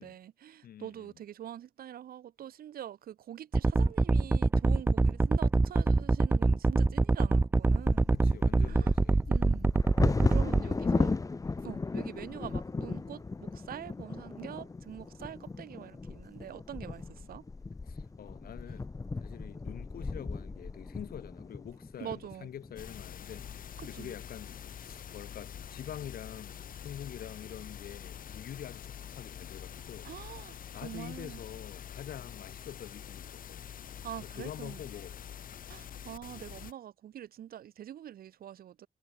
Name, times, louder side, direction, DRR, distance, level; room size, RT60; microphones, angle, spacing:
voice 1, 0.0-8.1 8.7-8.9 9.3-9.7 10.0-11.1 11.6-17.4 22.0-22.5 23.8-24.1 30.0-31.4 34.0-34.8 35.7-38.9, right 11 dB, 85° right, 1.4 m, -45 dB
voice 2, 0.6-1.1 8.1-9.7 10.6-11.6 17.9-30.4 30.7-33.7 34.2-35.2, left 10 dB, 85° left, 7.0 m, -46 dB
sound 1, 3.5-10.6, right 3 dB, 15° right, 0.4 m, -24 dB
Bird vocalization bird call bird song / Wind / Thunder, 7.6-23.5 24.1-24.2 24.5-24.9 25.4-25.9, left 3 dB, 20° left, 1.6 m, -36 dB
sound 2, 22.8-36.7, left 9 dB, 70° left, 3.8 m, -45 dB
wide cardioid pair, 140°, 15 cm